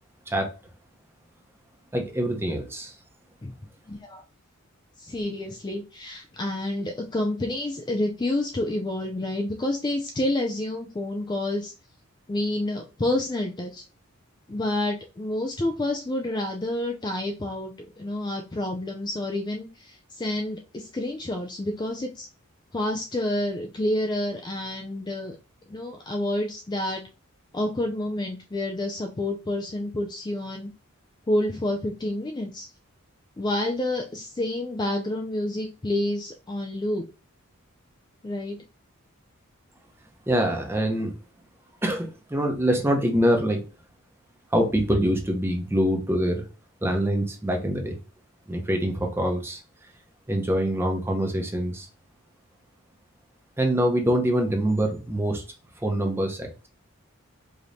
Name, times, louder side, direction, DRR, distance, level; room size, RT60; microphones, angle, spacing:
voice 1, 1.9-2.9 40.3-41.1 41.8-43.6 44.5-46.5 46.8-48.0 48.5-49.6 50.3-51.9 53.6-55.4 55.8-56.7, equal, 10° right, 3 dB, 0.8 m, -24 dB
voice 2, 3.9-4.2 5.0-11.7 12.3-13.8 14.5-22.3 22.7-25.4 25.7-27.0 27.5-30.7 31.3-32.7 33.4-37.0 38.2-38.6, left 1 dB, 20° left, 2 dB, 0.4 m, -29 dB
5.0 x 3.0 x 2.6 m, 0.33 s
head